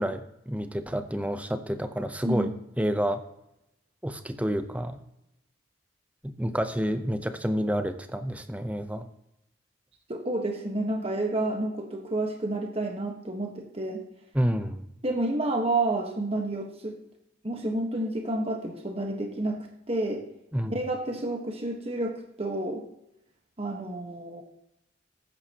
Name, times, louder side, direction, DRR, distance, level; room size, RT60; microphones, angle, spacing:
voice 1, 0.0-3.2 4.0-5.0 6.2-9.0 14.3-14.8 20.5-20.8, equal, 10° right, 8 dB, 0.8 m, -29 dB
voice 2, 10.1-14.0 15.0-17.0 17.4-20.2 20.7-22.8 23.6-24.4, right 2 dB, 30° right, 2 dB, 1.4 m, -30 dB
14.5 x 11.0 x 3.0 m, 0.83 s
head